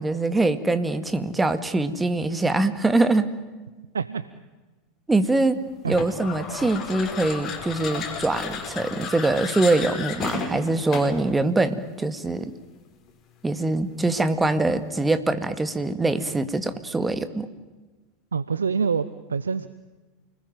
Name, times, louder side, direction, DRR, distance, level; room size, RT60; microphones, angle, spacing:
voice 1, 0.0-3.3 5.1-5.6 5.8-12.5 13.4-17.5, right 2 dB, 10° right, 11 dB, 2.1 m, -23 dB
sound 1, 5.9-11.3, left 6 dB, 35° left, 5.2 m, -33 dB
voice 2, 18.3-19.7, right 5 dB, 85° right, 15 dB, 0.8 m, -26 dB
29.0 x 20.5 x 9.1 m, 1.2 s
hypercardioid pair, 85°, 0 cm